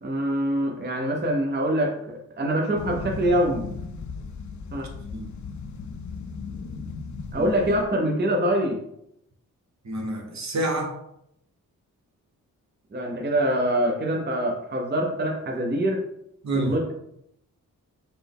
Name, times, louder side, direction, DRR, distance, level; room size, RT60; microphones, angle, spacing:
voice 1, 0.0-3.7 4.7-4.9 7.3-8.8 12.9-16.0 16.5-16.9, right 1 dB, 30° right, 0 dB, 0.7 m, -24 dB
sound 1, 2.8-7.8, left 4 dB, 55° left, 0.5 m, -36 dB
voice 2, 9.8-11.0 16.4-16.8, right 1 dB, 55° right, 2 dB, 0.9 m, -28 dB
4.2 x 2.1 x 3.5 m, 0.76 s
cardioid pair, 50°, 34 cm